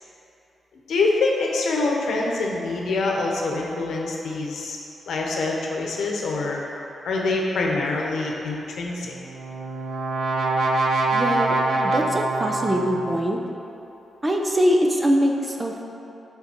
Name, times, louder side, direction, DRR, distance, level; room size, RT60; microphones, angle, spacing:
voice 1, 0.9-4.8 5.1-6.6 7.0-9.1, left 3 dB, 75° left, -1 dB, 0.9 m, -25 dB
Brass instrument, 9.1-13.2, right 2 dB, 65° right, 0.5 m, -24 dB
voice 2, 11.1-11.6 11.8-13.4 14.2-15.8, equal, 15° right, 1 dB, 0.5 m, -22 dB
7.1 x 3.9 x 4.4 m, 2.8 s
wide cardioid pair, 140°, 0 cm